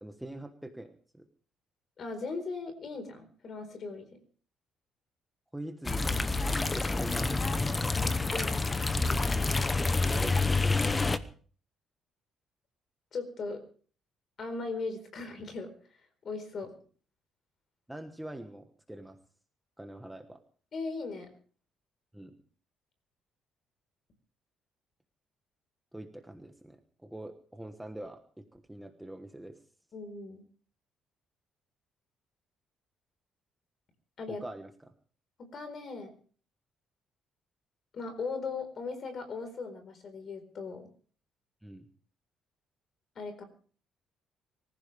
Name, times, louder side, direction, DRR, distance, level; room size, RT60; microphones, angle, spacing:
voice 1, 0.0-1.3 5.5-7.6 9.4-9.7 10.0-11.0 17.9-19.2 19.8-20.4 22.1-22.3 25.9-29.6 34.3-34.9 41.6-41.9, right 1 dB, 5° right, 5 dB, 1.2 m, -44 dB
voice 2, 2.0-4.1 8.0-8.5 13.1-13.6 14.4-15.7 16.2-16.7 20.7-21.3 29.9-30.4 34.2-34.4 35.5-36.1 37.9-40.9 43.2-43.4, left 4 dB, 40° left, 8 dB, 4.4 m, -38 dB
sound 1, 5.8-11.2, left 3 dB, 15° left, 0.8 m, -28 dB
24.5 x 15.0 x 3.4 m, 0.43 s
cardioid pair, 155°, 0 cm